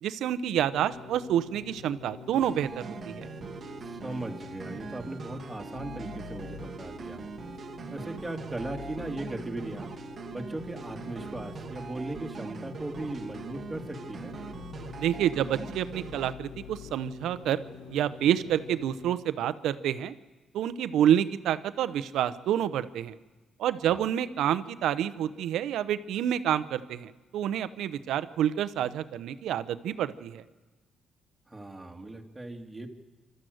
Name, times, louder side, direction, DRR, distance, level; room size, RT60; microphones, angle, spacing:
voice 1, 0.0-3.3 15.0-17.6 17.9-20.1 20.5-23.1 23.6-30.4, right 10 dB, 80° right, 13 dB, 0.8 m, -28 dB
sound 1, 0.7-19.2, left 6 dB, 85° left, 1.3 m, -47 dB
sound 2, 2.3-16.3, right 5 dB, 45° right, 1.2 m, -42 dB
voice 2, 3.8-7.2 7.9-9.9 10.3-14.4 23.9-24.1 31.5-32.9, right 2 dB, 10° right, 2 dB, 2.3 m, -38 dB
sound 3, 5.7-16.9, left 16 dB, 70° left, 4.9 m, -51 dB
26.0 x 13.5 x 7.9 m, 1.2 s
cardioid pair, 90°, 0 cm